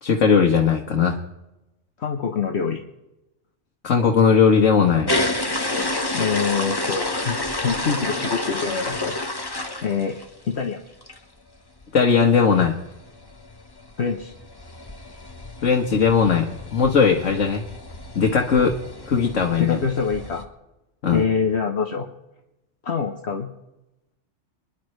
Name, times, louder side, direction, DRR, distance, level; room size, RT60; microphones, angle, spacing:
voice 1, 0.0-1.2 3.8-5.2 11.9-12.7 15.6-17.6 18.2-18.8 19.1-19.8 21.0-21.2, left 6 dB, 90° left, 1 dB, 1.7 m, -18 dB
voice 2, 2.0-2.8 6.1-9.1 9.8-10.2 10.5-10.8 14.0-14.3 19.6-20.5 21.1-22.1 22.8-23.5, left 5 dB, 60° left, 4 dB, 1.3 m, -25 dB
sound 1, 5.1-10.5 10.9-11.2 11.5-11.6 11.8-11.9 12.2-20.4, left 2 dB, 20° left, 1.1 m, -30 dB
27.0 x 11.0 x 3.2 m, 0.94 s
omnidirectional pair, 1.3 m